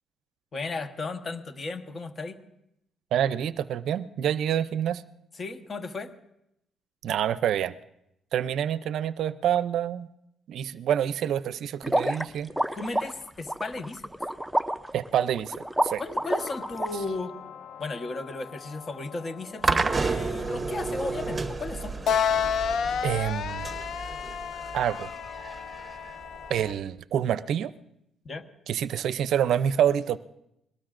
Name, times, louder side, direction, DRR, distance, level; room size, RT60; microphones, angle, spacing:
voice 1, 0.5-2.4 5.3-6.1 12.8-14.1 16.0-17.3 17.8-22.0 28.2-28.4, left 3 dB, 40° left, 8 dB, 1.1 m, -35 dB
voice 2, 3.1-5.0 7.0-7.7 8.3-10.1 10.5-12.5 14.9-15.5 15.8-16.0 23.0-23.7 24.7-25.1 26.5-27.7 28.7-30.2, right 10 dB, 75° right, 15 dB, 0.5 m, -27 dB
sound 1, 11.8-16.9, right 1 dB, ahead, 0.5 m, -28 dB
sound 2, 16.4-26.7, left 7 dB, 65° left, 0.4 m, -33 dB
sound 3, 19.6-26.7, right 4 dB, 25° right, 0.9 m, -31 dB
22.0 x 19.0 x 2.5 m, 0.81 s
cardioid pair, 90°, 0 cm